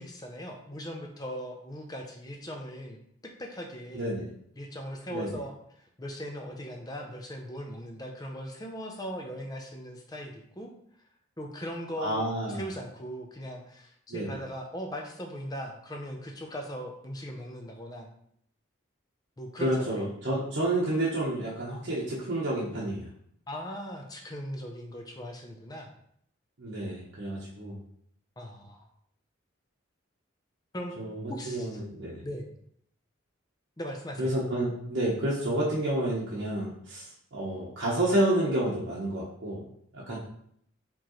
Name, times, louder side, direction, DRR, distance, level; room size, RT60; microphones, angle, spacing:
voice 1, 0.0-4.1 4.6-5.5 6.0-10.7 11.4-18.1 19.4-20.1 23.5-25.9 28.4-28.9 30.7-31.0 31.3-31.7 32.2-32.5 33.8-34.3 40.1-40.2, equal, 20° left, 2 dB, 0.5 m, -39 dB
voice 2, 3.9-4.3 5.1-5.3 12.0-12.6 14.1-14.4 19.6-23.1 26.6-27.8 31.0-32.2 34.2-39.6 39.9-40.2, right 1 dB, 65° right, -8 dB, 1.0 m, -30 dB
4.6 x 3.8 x 3.1 m, 0.68 s
head